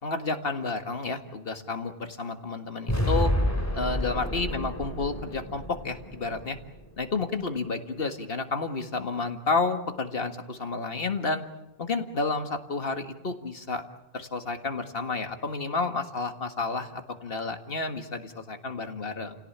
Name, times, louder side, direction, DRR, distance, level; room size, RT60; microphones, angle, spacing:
voice 1, 0.0-3.3 3.7-6.6 7.0-11.4 11.8-13.8 14.1-19.4, left 3 dB, 65° left, 7 dB, 2.0 m, -31 dB
sound 1, 2.9-7.0, equal, 15° left, 3.2 m, -29 dB
30.0 x 17.5 x 8.7 m, 0.90 s
omnidirectional pair, 1.1 m